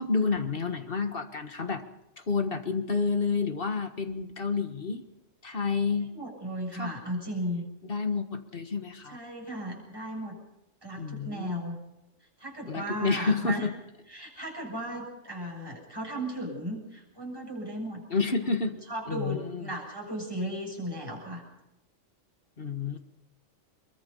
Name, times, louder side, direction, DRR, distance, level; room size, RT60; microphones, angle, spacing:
voice 1, 0.0-1.8 2.2-5.0 5.4-6.1 6.7-6.9 7.9-9.2 11.0-11.7 12.7-13.7 18.1-18.7 19.1-19.7 22.6-23.0, left 4 dB, 45° left, 7 dB, 1.7 m, -29 dB
voice 2, 6.1-7.6 9.1-10.4 10.8-11.8 12.4-13.7 14.1-18.0 18.9-21.4, right 1 dB, 15° right, -1 dB, 7.0 m, -36 dB
23.0 x 22.5 x 5.5 m, 0.90 s
omnidirectional pair, 1.4 m